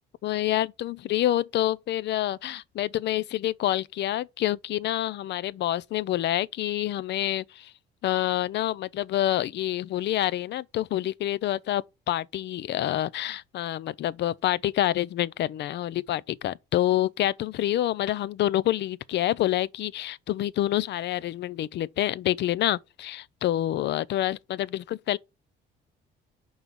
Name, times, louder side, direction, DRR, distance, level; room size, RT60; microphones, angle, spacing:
voice 1, 0.2-7.7 8.0-25.2, left 13 dB, 55° left, 0.4 m, -27 dB
5.4 x 3.9 x 6.0 m
supercardioid pair, 80°, 21 cm